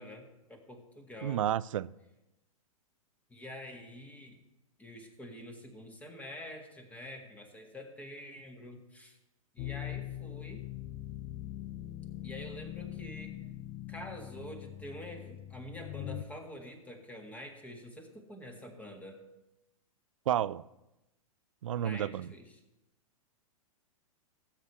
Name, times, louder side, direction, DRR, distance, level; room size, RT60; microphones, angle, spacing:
voice 1, 0.0-1.5 3.3-4.4 4.8-9.2 9.5-10.6 12.2-13.4 13.9-19.2 21.7-22.6, left 1 dB, 10° left, 1.7 m, -47 dB
voice 2, 1.2-1.9 20.3-20.6 21.6-22.3, right 11 dB, 65° right, 0.4 m, -31 dB
sound 1, 9.6-16.2, left 13 dB, 35° left, 0.7 m, -42 dB
18.5 x 8.1 x 3.2 m
figure-of-eight pair, 110°, 18 cm